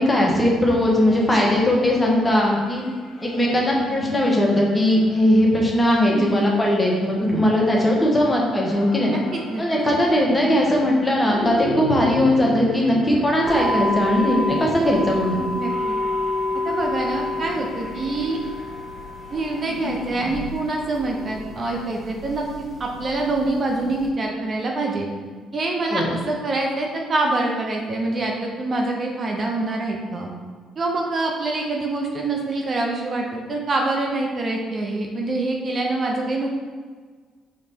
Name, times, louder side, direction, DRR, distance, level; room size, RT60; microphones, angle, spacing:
voice 1, 0.0-2.8 3.2-9.1 9.6-15.4 25.9-26.1, left 1 dB, 20° left, -2 dB, 1.1 m, -19 dB
sound 1, 0.7-20.5, left 2 dB, 70° left, 1.1 m, -36 dB
voice 2, 6.1-6.5 9.0-9.6 14.4-14.6 15.6-15.9 16.6-18.4 19.3-22.4 22.8-25.1 25.5-30.3 30.8-36.5, right 2 dB, 45° right, 0 dB, 0.6 m, -25 dB
sound 2, 13.4-24.1, left 2 dB, 5° right, 1.3 m, -29 dB
5.0 x 3.2 x 2.8 m, 1.5 s
supercardioid pair, 65°, 0 cm